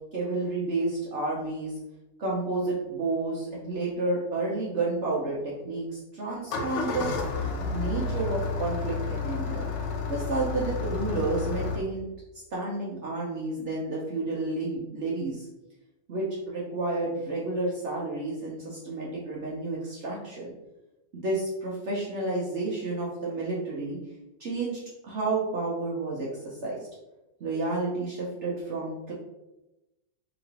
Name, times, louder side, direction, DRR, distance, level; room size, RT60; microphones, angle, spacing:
voice 1, 0.1-1.7 2.2-7.1 7.7-9.7 10.1-12.1 12.5-15.5 16.1-20.5 21.1-24.0 24.4-26.8 27.4-29.1, right 2 dB, 65° right, -5 dB, 0.7 m, -31 dB
Engine starting, 6.3-11.8, left 4 dB, 80° left, 0.6 m, -31 dB
3.0 x 2.9 x 2.7 m, 0.98 s
omnidirectional pair, 1.9 m